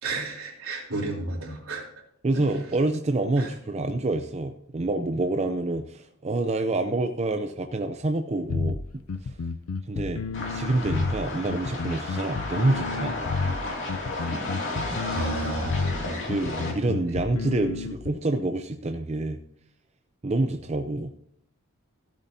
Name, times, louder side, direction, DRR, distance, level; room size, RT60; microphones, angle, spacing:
voice 1, 0.0-1.8 2.3-2.5 3.4-3.5 15.1-16.2 17.1-17.2, right 2 dB, 75° right, -2 dB, 3.2 m, -32 dB
voice 2, 2.2-9.0 9.9-10.2 10.5-13.1 16.3-19.4 20.2-21.1, right 2 dB, 30° right, 6 dB, 0.5 m, -27 dB
sound 1, 8.5-18.1, left 4 dB, 75° left, 0.5 m, -31 dB
sound 2, 10.3-16.7, left 2 dB, 60° left, 2.5 m, -33 dB
15.5 x 8.4 x 2.7 m, 0.73 s
head